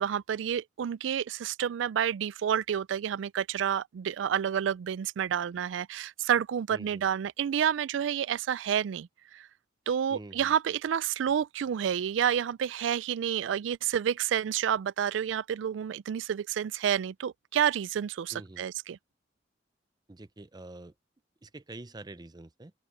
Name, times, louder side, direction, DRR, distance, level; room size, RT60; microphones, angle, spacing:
voice 1, 0.0-9.1 9.3-9.5 9.9-19.0, right 9 dB, 80° right, 0.3 m, -29 dB
voice 2, 6.7-7.1 10.1-10.5 18.3-18.6 20.1-20.9 21.4-22.7, right 2 dB, 20° right, 0.6 m, -46 dB
open air
head